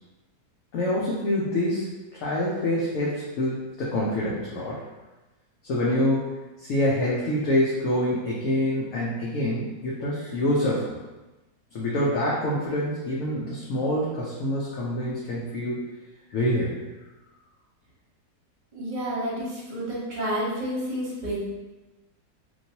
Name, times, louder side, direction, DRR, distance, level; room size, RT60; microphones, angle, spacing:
voice 1, 0.7-4.8 5.6-11.0 11.7-15.9 16.3-16.8, left 1 dB, 65° left, -6 dB, 0.9 m, -26 dB
voice 2, 18.7-21.4, equal, 35° right, -6 dB, 0.9 m, -30 dB
3.1 x 2.5 x 2.7 m, 1.1 s
omnidirectional pair, 1.6 m